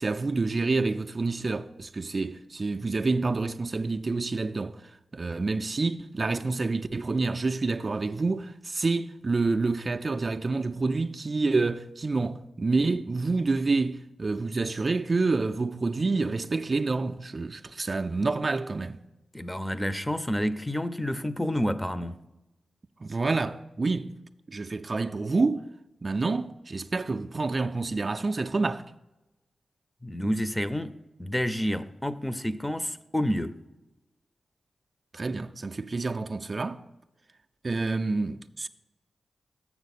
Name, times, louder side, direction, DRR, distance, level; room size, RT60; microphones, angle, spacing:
voice 1, 0.0-4.8 5.1-19.0 23.0-24.1 24.5-25.7 26.0-28.8 35.1-36.8 37.6-38.7, right 3 dB, 45° right, 0.3 m, -28 dB
voice 2, 19.3-22.2 30.0-33.6, equal, 10° left, 0.5 m, -29 dB
7.1 x 6.5 x 4.1 m
cardioid pair, 50°, 0 cm